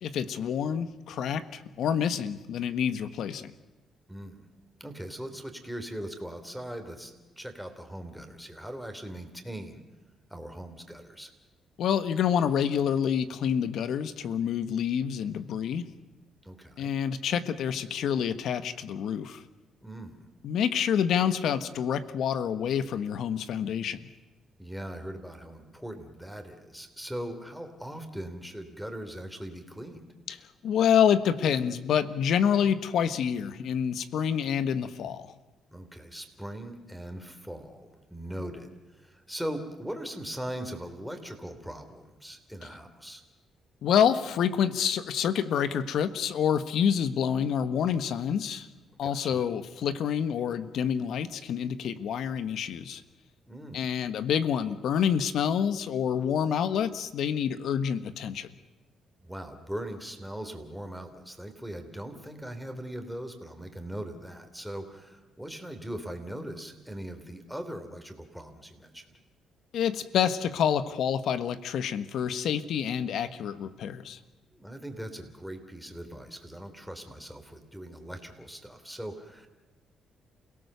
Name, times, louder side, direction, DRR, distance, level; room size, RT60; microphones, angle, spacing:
voice 1, 0.0-3.5 11.8-15.8 16.8-19.4 20.4-24.0 30.3-30.4 30.6-35.3 43.8-48.7 49.0-53.0 53.7-58.5 69.7-74.2, left 8 dB, 75° left, 12 dB, 1.3 m, -27 dB
voice 2, 4.1-4.5 4.8-9.8 10.3-11.3 16.4-17.0 19.8-20.3 24.6-30.1 35.7-43.2 49.0-49.5 53.5-53.9 59.2-69.2 74.5-79.5, right 1 dB, ahead, 5 dB, 3.4 m, -40 dB
28.5 x 17.5 x 6.9 m, 1.1 s
cardioid pair, 90°, 0 cm